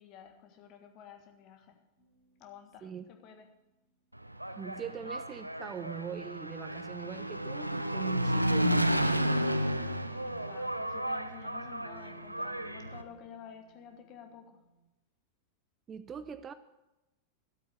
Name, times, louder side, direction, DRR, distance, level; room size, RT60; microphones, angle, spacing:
voice 1, 0.0-1.8 2.4-3.5 10.2-14.6, left 7 dB, 40° left, 1.7 m, -51 dB
sound 1, 1.9-4.3 7.4-7.5 8.2-8.7 9.3-10.2 11.8-14.8, right 1 dB, 75° left, 5.2 m, -61 dB
Engine, 4.2-13.0, equal, 90° right, 0.7 m, -32 dB
voice 2, 4.6-9.5 15.9-16.5, right 7 dB, 25° right, 0.5 m, -42 dB
13.0 x 8.1 x 6.5 m
figure-of-eight pair, 90°, 0 cm